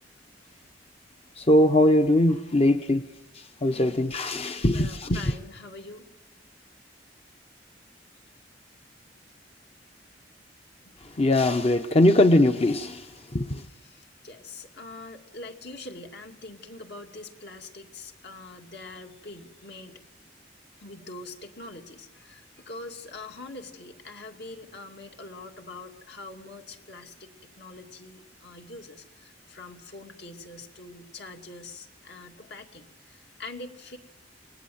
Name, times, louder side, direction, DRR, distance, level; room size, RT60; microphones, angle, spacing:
voice 1, 1.3-3.1 3.3-5.3 11.0-13.7, left 1 dB, 35° left, 7 dB, 0.8 m, -21 dB
voice 2, 3.7-4.1 4.6-6.1 10.8-11.0 13.8-20.0 20.8-34.0, left 2 dB, 65° left, 3 dB, 2.4 m, -44 dB
29.0 x 20.5 x 7.9 m, 1.0 s
head